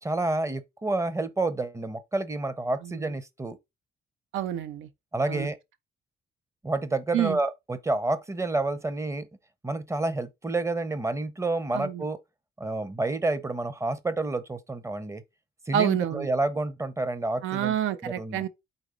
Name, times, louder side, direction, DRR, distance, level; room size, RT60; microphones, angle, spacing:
voice 1, 0.0-3.6 5.1-5.6 6.6-9.3 9.6-12.2 12.6-15.2 15.7-17.7 18.0-18.4, right 2 dB, 15° right, 0.6 m, -29 dB
voice 2, 4.3-4.9 5.3-5.5 7.1-7.4 11.7-12.0 15.7-16.3 17.4-18.5, right 10 dB, 85° right, 0.5 m, -28 dB
4.1 x 3.1 x 3.7 m
cardioid pair, 90°, 20 cm